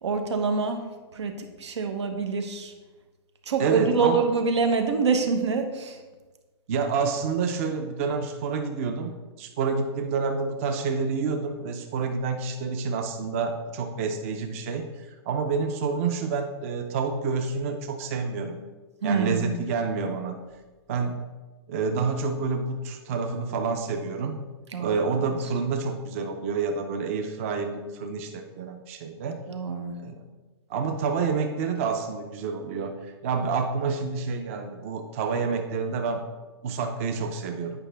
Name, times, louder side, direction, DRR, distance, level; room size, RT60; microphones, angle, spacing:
voice 1, 0.0-0.8 1.1-2.7 3.4-6.0 19.0-19.5 24.7-25.4 29.5-30.0, right 4 dB, 90° right, 5 dB, 1.1 m, -26 dB
voice 2, 3.6-4.2 6.7-18.6 19.0-20.4 20.9-21.2 21.7-24.4 24.8-29.4 30.0-30.2 30.7-36.2 36.6-37.7, right 5 dB, 30° right, 5 dB, 0.5 m, -28 dB
8.9 x 5.2 x 3.4 m, 1.3 s
hypercardioid pair, 165°, 14 cm